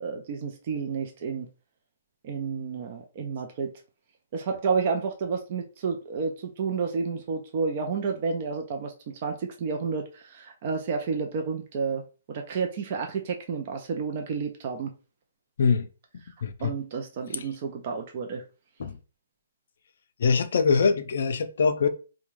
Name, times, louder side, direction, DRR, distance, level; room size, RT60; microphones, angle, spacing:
voice 1, 0.0-1.5 2.2-3.7 4.3-8.9 9.2-14.9 16.6-18.4, right 5 dB, 40° right, 0.4 m, -30 dB
voice 2, 15.6-15.9 16.4-16.7 17.3-17.5 18.8-19.0 20.2-21.9, left 5 dB, 65° left, 0.4 m, -23 dB
2.4 x 2.1 x 3.1 m
hypercardioid pair, 145°, 0 cm